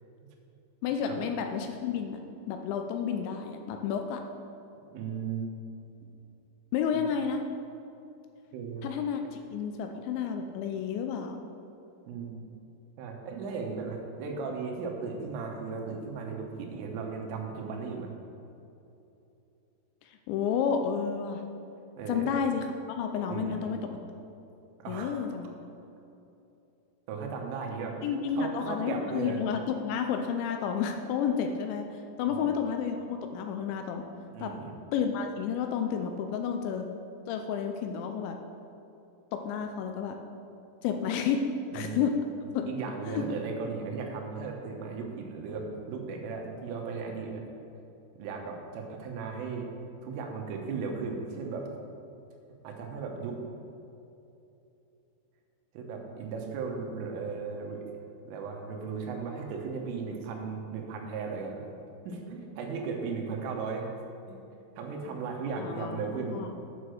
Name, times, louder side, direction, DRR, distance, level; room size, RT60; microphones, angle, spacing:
voice 1, 0.8-2.2 2.5-4.2 6.7-7.5 8.8-9.2 9.5-11.4 20.0-21.4 22.1-23.9 24.9-25.5 28.0-34.0 34.4-34.5 34.9-36.9 37.3-38.4 39.3-40.2 40.8-41.5 41.7-42.2 42.5-42.8 43.1-43.2 65.6-66.5, left 7 dB, 80° left, 5 dB, 2.7 m, -31 dB
voice 2, 4.9-5.4 6.9-7.1 8.5-8.9 12.1-12.4 13.0-18.1 22.0-22.3 23.3-23.7 24.8-25.2 27.1-28.1 28.4-29.4 32.3-32.6 34.3-34.7 41.7-42.1 42.7-47.4 48.2-49.7 50.0-51.7 52.6-53.4 55.8-57.8 58.3-61.6 62.0-63.9 64.3-64.4 64.8-66.5, right 5 dB, 85° right, 2 dB, 3.7 m, -36 dB
8.8 x 6.5 x 6.3 m, 2.9 s
omnidirectional pair, 5.5 m